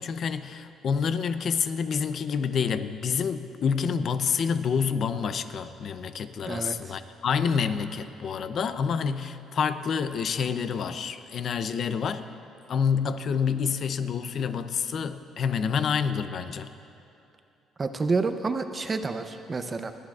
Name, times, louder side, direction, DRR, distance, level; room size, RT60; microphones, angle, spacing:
voice 1, 0.0-12.2 12.7-16.7, left 6 dB, 50° left, 11 dB, 0.6 m, -28 dB
voice 2, 6.5-7.0 17.8-19.9, right 4 dB, 25° right, 8 dB, 0.6 m, -29 dB
28.5 x 11.0 x 2.4 m, 2.9 s
cardioid pair, 125°, 0 cm